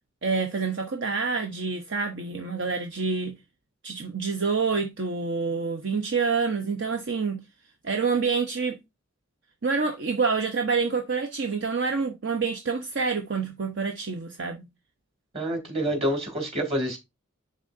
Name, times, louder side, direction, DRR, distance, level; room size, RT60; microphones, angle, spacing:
voice 1, 0.2-3.4 3.8-7.4 7.8-8.8 9.6-14.6, right 4 dB, 65° right, 0.8 m, -27 dB
voice 2, 15.3-17.0, equal, 30° right, 2.5 m, -27 dB
10.0 x 3.8 x 2.6 m
head